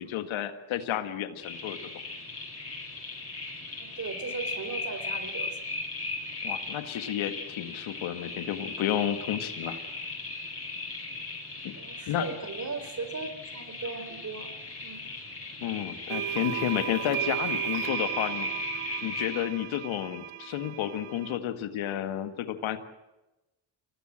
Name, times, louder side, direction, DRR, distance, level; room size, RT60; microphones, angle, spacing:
voice 1, 0.0-1.8 6.4-9.8 11.6-11.7 12.1-12.3 15.6-18.5 19.0-22.8, left 11 dB, 75° left, 9 dB, 1.8 m, -31 dB
sound 1, 1.4-19.4, left 3 dB, 30° left, 7.9 m, -38 dB
voice 2, 3.8-5.7 11.8-14.5 14.8-15.0, right 4 dB, 35° right, 10 dB, 4.1 m, -38 dB
sound 2, 16.1-21.4, right 15 dB, 75° right, 1.0 m, -35 dB
23.5 x 17.5 x 7.6 m, 1.0 s
supercardioid pair, 65°, 47 cm